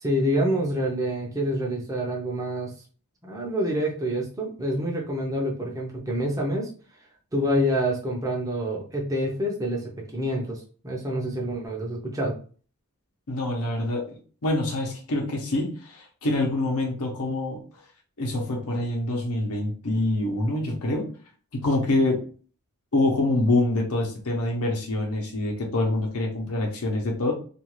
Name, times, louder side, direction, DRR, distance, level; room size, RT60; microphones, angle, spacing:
voice 1, 0.0-2.7 3.2-6.7 7.3-12.4, equal, 15° right, -2 dB, 0.6 m, -27 dB
voice 2, 13.3-14.2 14.4-17.6 18.2-21.1 21.5-22.2 22.9-27.3, left 2 dB, 80° left, 0 dB, 0.8 m, -25 dB
2.5 x 2.4 x 3.0 m, 0.40 s
head